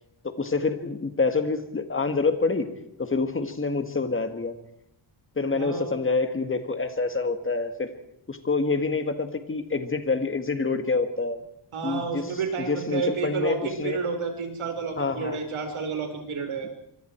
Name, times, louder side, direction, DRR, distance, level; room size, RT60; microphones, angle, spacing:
voice 1, 0.2-2.7 3.0-4.5 5.4-7.9 8.3-11.4 11.8-12.3 12.7-14.0 15.0-15.4 16.6-16.7, left 4 dB, 25° left, 8 dB, 1.9 m, -27 dB
voice 2, 5.5-5.9 11.7-16.7, right 5 dB, 75° right, 4 dB, 4.7 m, -30 dB
25.5 x 25.0 x 4.6 m, 0.74 s
wide cardioid pair, 150°, 50 cm